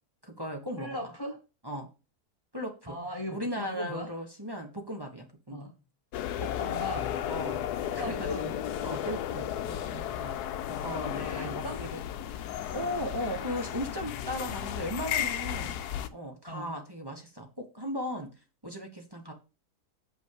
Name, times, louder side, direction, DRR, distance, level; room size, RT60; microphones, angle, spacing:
voice 1, 0.2-1.0 1.6-1.9 2.5-3.0 3.3-5.7 7.3-8.3 8.8-9.5 10.1-10.4 10.7-15.8 16.1-18.3 18.6-19.3, equal, 15° right, 2 dB, 1.2 m, -37 dB
voice 2, 0.8-1.4 2.9-4.1 5.5-5.7 6.4-7.1 8.0-8.5 9.6-10.1 10.8-11.9 16.5-16.8, left 1 dB, 20° left, 4 dB, 0.8 m, -39 dB
sound 1, 6.1-16.1, left 10 dB, 85° left, 1.2 m, -34 dB
7.1 x 5.3 x 4.8 m, 0.32 s
omnidirectional pair, 1.6 m